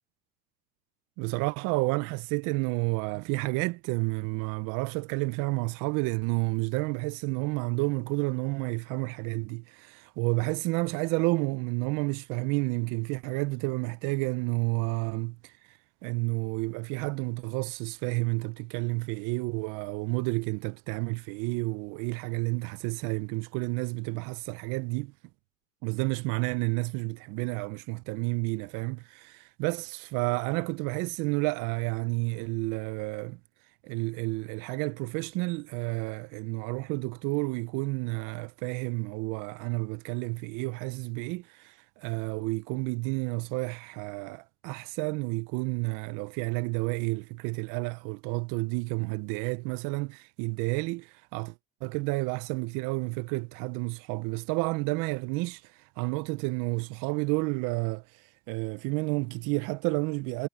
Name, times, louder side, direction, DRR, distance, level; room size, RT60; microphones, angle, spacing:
voice 1, 1.2-15.5 16.0-25.1 25.8-33.4 33.8-51.5 51.8-55.6 56.0-58.0 58.5-60.5, right 26 dB, 60° right, 0.5 m, -30 dB
cardioid pair, 155°, 37 cm